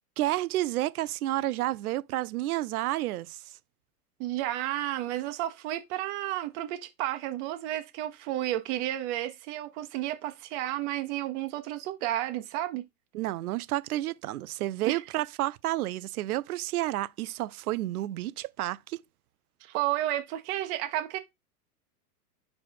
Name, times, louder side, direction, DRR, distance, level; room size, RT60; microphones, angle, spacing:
voice 1, 0.2-3.4 13.1-19.0, right 15 dB, 70° right, 0.6 m, -30 dB
voice 2, 4.2-12.8 14.8-15.0 19.6-21.2, right 14 dB, 45° right, 1.0 m, -32 dB
4.9 x 4.2 x 4.6 m
hypercardioid pair, 110°, 47 cm